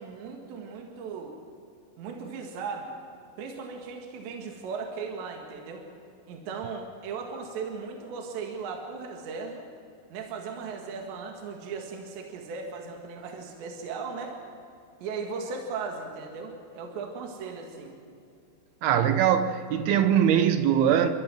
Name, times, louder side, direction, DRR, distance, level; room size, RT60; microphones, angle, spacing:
voice 1, 0.0-1.4 2.0-3.0 3.4-5.9 6.3-9.7 10.1-14.4 15.0-18.0, right 5 dB, 65° right, 3.8 m, -37 dB
voice 2, 18.8-21.1, right 9 dB, 85° right, 2.2 m, -22 dB
29.5 x 13.0 x 7.6 m
omnidirectional pair, 5.7 m